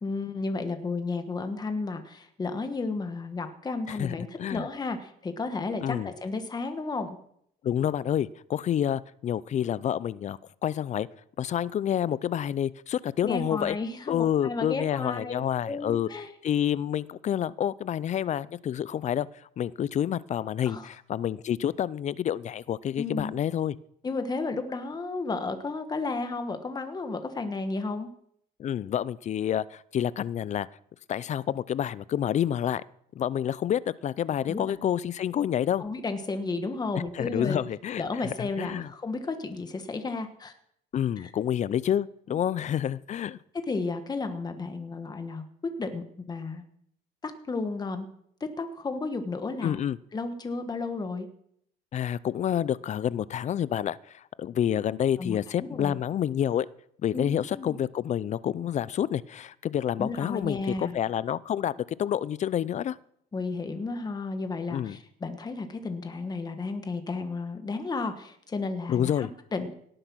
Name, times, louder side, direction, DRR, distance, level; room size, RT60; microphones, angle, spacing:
voice 1, 0.0-7.2 13.2-16.3 20.6-20.9 23.0-23.3 24.0-28.1 34.5-34.8 35.8-37.6 38.0-40.5 41.2-41.3 43.7-46.6 47.2-48.1 48.4-49.8 50.1-51.3 55.2-56.0 57.1-57.7 60.0-60.9 63.3-69.7, left 3 dB, 25° left, 7 dB, 1.4 m, -33 dB
voice 2, 3.9-4.7 5.8-6.1 7.6-11.1 11.4-13.8 14.1-16.1 16.4-23.8 28.6-30.7 31.1-32.8 33.2-35.8 37.1-38.0 38.4-38.9 40.9-43.4 49.6-50.0 51.9-56.7 57.0-63.0 64.7-65.0 68.9-69.3, left 10 dB, 45° left, 20 dB, 0.5 m, -28 dB
18.0 x 7.8 x 6.2 m, 0.69 s
cardioid pair, 110°, 17 cm